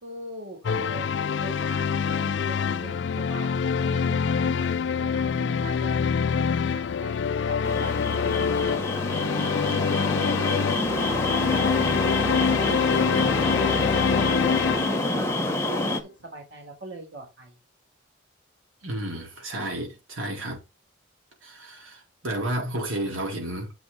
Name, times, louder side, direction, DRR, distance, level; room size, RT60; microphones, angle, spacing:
voice 1, 0.0-1.1 1.4-3.5 3.8-8.0 8.4-10.0 10.3-11.4 11.6-11.9 12.2-14.5 14.8-17.6, right 1 dB, 60° right, 3.5 m, -41 dB
sound 1, 0.6-15.4, left 6 dB, 60° left, 0.4 m, -25 dB
sound 2, 7.6-16.0, left 1 dB, 15° left, 1.1 m, -27 dB
voice 2, 18.8-20.6 21.4-23.7, right 1 dB, 90° right, 3.8 m, -32 dB
8.2 x 6.0 x 4.0 m
head